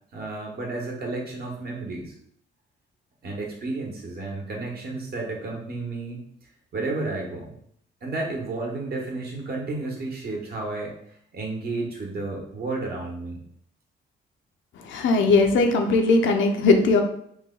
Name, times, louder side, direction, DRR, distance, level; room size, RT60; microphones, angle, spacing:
voice 1, 0.1-2.1 3.2-6.2 6.7-7.5 8.0-11.0 11.3-13.4, right 3 dB, 55° right, -1 dB, 1.1 m, -32 dB
voice 2, 14.8-17.0, left 3 dB, 70° left, 4 dB, 0.6 m, -19 dB
3.1 x 2.2 x 3.7 m, 0.67 s
cardioid pair, 90°, 20 cm